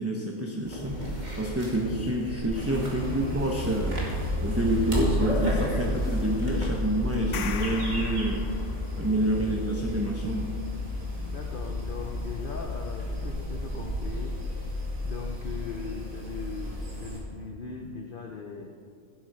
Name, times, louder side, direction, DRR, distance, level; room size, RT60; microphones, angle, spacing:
voice 1, 0.0-4.0 4.4-8.4 9.0-10.5, right 1 dB, 15° right, -1 dB, 0.9 m, -28 dB
sound 1, 0.6-6.6, right 1 dB, 35° right, 2.3 m, -34 dB
sound 2, 2.5-17.2, left 1 dB, 75° right, 2.6 m, -32 dB
sound 3, 7.1-9.1, left 8 dB, 80° left, 1.1 m, -38 dB
voice 2, 11.2-14.4 15.0-18.8, left 5 dB, 50° left, 2 dB, 0.9 m, -39 dB
16.0 x 8.0 x 5.5 m, 2.3 s
omnidirectional pair, 1.3 m